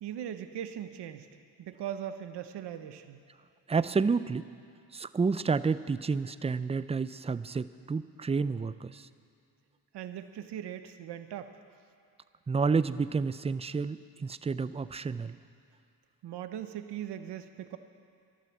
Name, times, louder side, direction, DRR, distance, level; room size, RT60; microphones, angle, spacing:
voice 1, 0.0-1.3 1.6-3.2 9.9-11.6 16.2-17.8, right 10 dB, 90° right, 9 dB, 0.8 m, -39 dB
voice 2, 3.7-4.5 4.9-9.1 12.5-15.4, right 4 dB, 15° right, 14 dB, 0.4 m, -30 dB
12.5 x 11.5 x 7.3 m, 2.4 s
cardioid pair, 65°, 40 cm